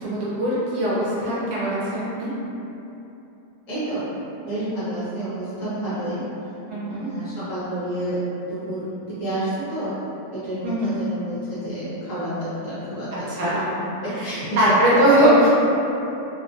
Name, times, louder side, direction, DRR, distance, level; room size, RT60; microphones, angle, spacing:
voice 1, 0.0-2.3 6.7-7.1 10.6-11.0 13.3-13.7 14.2-14.3 14.6-15.5, right 1 dB, 70° right, -8 dB, 1.1 m, -20 dB
voice 2, 3.7-4.0 4.4-6.2 6.8-8.2 8.5-9.9 10.3-13.5 14.2-14.6 14.9-15.3, right 1 dB, 55° left, -12 dB, 1.1 m, -29 dB
2.9 x 2.2 x 2.5 m, 2.9 s
omnidirectional pair, 1.8 m